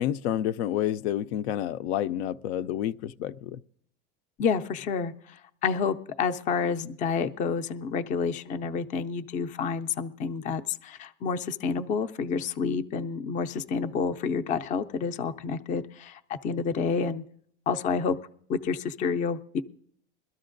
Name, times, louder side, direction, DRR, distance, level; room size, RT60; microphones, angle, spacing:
voice 1, 0.0-3.6, left 11 dB, 70° left, 0.5 m, -29 dB
voice 2, 4.4-17.2 17.7-18.2 18.5-19.6, left 5 dB, 25° left, 0.4 m, -29 dB
22.0 x 13.0 x 2.5 m
supercardioid pair, 130°, 33 cm